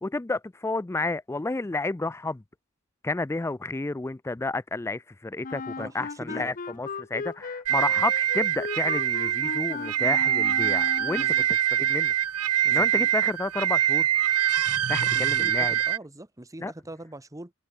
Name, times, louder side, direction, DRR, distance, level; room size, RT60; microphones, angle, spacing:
voice 1, 0.0-2.4 3.0-11.3 11.8-12.1 12.6-14.1 14.9-15.8 16.6-16.7, left 3 dB, 10° left, 0.3 m, -31 dB
Wind instrument woodwind instrument, 5.4-11.5, left 4 dB, 35° left, 0.7 m, -36 dB
voice 2, 6.2-6.5 11.2-11.4 12.6-13.1 14.9-17.5, right 1 dB, 15° right, 1.1 m, -42 dB
sound 1, 7.7-16.0, right 11 dB, 85° right, 0.9 m, -24 dB
head